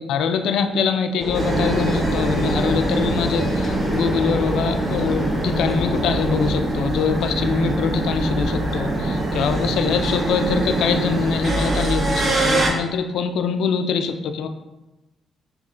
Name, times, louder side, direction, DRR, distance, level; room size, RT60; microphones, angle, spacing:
voice 1, 0.0-14.5, left 6 dB, 80° left, 8 dB, 0.3 m, -23 dB
sound 1, 1.2-6.6, left 2 dB, 20° left, 0.6 m, -29 dB
sound 2, 1.3-12.7, right 2 dB, 45° right, 0.8 m, -23 dB
5.6 x 3.0 x 2.4 m, 1.0 s
cardioid pair, 90°, 0 cm